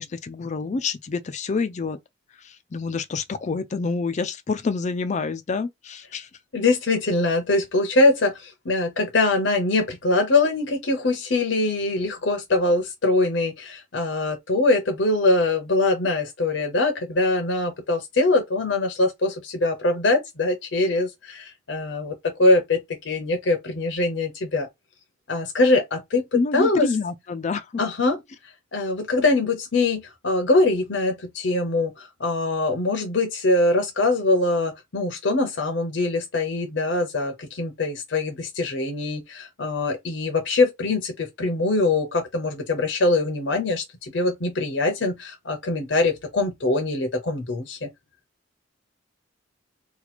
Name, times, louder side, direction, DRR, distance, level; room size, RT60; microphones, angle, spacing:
voice 1, 0.0-2.0 2.4-6.3 26.3-27.7, left 4 dB, 40° left, 0.4 m, -27 dB
voice 2, 6.5-24.7 25.3-26.9 27.8-28.2 28.7-47.9, left 2 dB, 70° left, 0.7 m, -23 dB
2.9 x 2.3 x 4.1 m
head